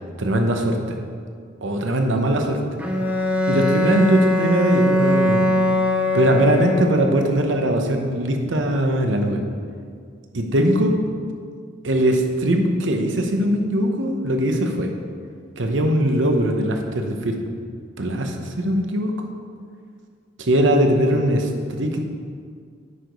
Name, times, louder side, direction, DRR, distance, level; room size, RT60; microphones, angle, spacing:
voice 1, 0.2-1.0 1.6-2.6 3.5-5.5 6.1-9.4 10.3-11.0 11.8-14.9 15.6-17.4 18.0-19.1 20.4-22.1, right 1 dB, 80° right, 4 dB, 0.9 m, -20 dB
Bowed string instrument, 2.8-7.2, left 1 dB, 10° right, 0.6 m, -21 dB
8.4 x 4.8 x 5.2 m, 2.1 s
head